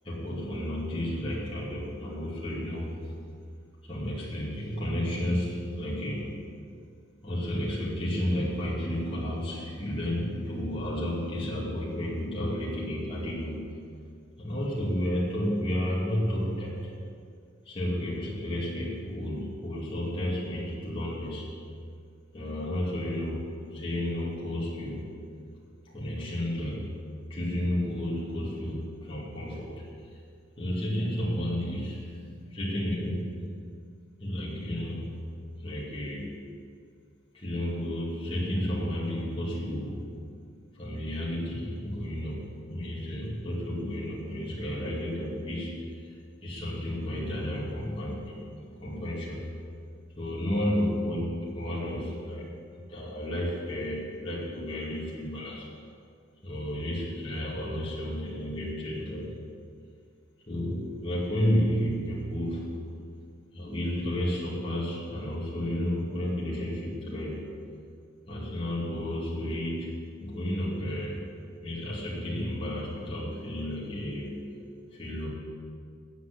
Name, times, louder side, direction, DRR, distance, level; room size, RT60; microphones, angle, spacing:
voice 1, 0.0-3.0 3.8-6.4 7.2-13.6 14.4-16.9 17.6-21.5 22.3-25.1 25.8-26.9 27.3-30.2 30.6-33.4 34.2-35.2 35.6-36.4 37.3-40.1 40.7-46.1 46.4-48.5 48.8-49.5 50.2-55.7 56.4-59.3 60.5-62.8 63.5-67.5 68.3-71.2 71.6-74.4 74.9-75.3, equal, 25° left, -7 dB, 2.5 m, -32 dB
9.2 x 8.2 x 8.3 m, 2.3 s
head